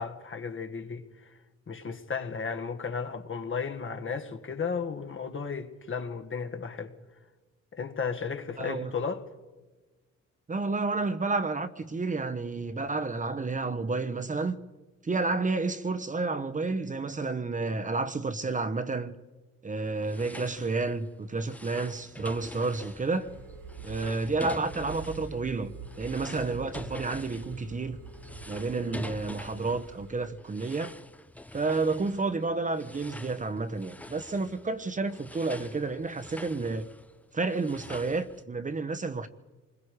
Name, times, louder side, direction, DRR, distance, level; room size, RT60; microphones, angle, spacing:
voice 1, 0.0-1.3 1.7-6.9 7.7-9.2 28.8-29.0, left 5 dB, 40° left, 1.8 m, -34 dB
voice 2, 8.6-8.9 10.5-14.6 15.0-19.1 19.6-23.3 23.8-28.0 28.5-30.9 31.5-36.9 37.3-39.3, right 3 dB, 25° right, 1.1 m, -30 dB
sound 1, 19.8-38.4, left 1 dB, 5° left, 0.7 m, -46 dB
Telephone, 23.3-30.3, right 4 dB, 85° right, 4.2 m, -46 dB
27.5 x 21.0 x 4.9 m
cardioid pair, 90°, 30 cm